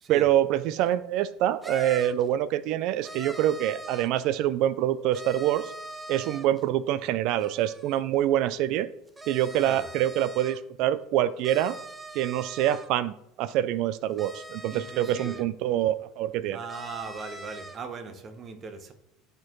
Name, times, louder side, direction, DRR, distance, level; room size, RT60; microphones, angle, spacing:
voice 1, 0.1-5.7 6.1-8.9 9.3-11.8 12.1-13.1 13.4-16.6, right 12 dB, 65° right, 17 dB, 0.3 m, -25 dB
sound 1, 0.8-0.9 1.6-2.3 3.0-4.2 5.1-6.6 7.4-8.0 9.1-10.6 11.4-12.9 14.2-15.5 16.7-17.8, right 1 dB, 15° right, 0.7 m, -42 dB
voice 2, 14.7-15.4 16.5-18.9, right 5 dB, 40° right, 8 dB, 1.0 m, -39 dB
11.5 x 4.4 x 3.0 m, 0.79 s
supercardioid pair, 95°, 0 cm